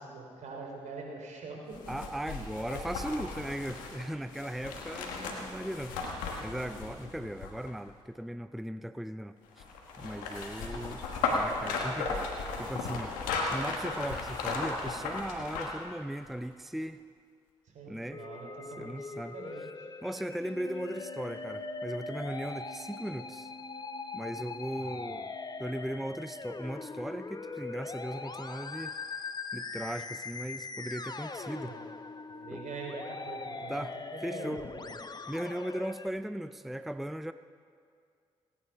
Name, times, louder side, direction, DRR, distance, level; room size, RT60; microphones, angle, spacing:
voice 1, 0.0-1.8 17.6-19.9 24.8-25.1 31.4-31.8 32.3-33.8 34.1-34.9, right 3 dB, 70° right, 0 dB, 3.3 m, -44 dB
sound 1, 1.7-7.9 9.6-15.9 16.3-16.4, left 3 dB, 90° left, 1.4 m, -35 dB
voice 2, 1.9-6.0 6.4-9.7 10.0-11.0 11.3-12.3 12.6-17.0 17.9-18.2 18.8-19.4 20.0-23.5 24.1-25.3 25.6-29.0 29.5-31.8 32.5-32.6 33.7-34.0 34.2-34.6 35.3-37.3, right 1 dB, ahead, 11 dB, 0.5 m, -38 dB
Musical instrument, 18.1-36.1, left 4 dB, 30° left, 0.8 m, -41 dB
Wind instrument woodwind instrument, 20.4-26.0, equal, 15° left, 2.5 m, -52 dB
17.5 x 9.8 x 5.7 m, 2.2 s
hypercardioid pair, 45°, 13 cm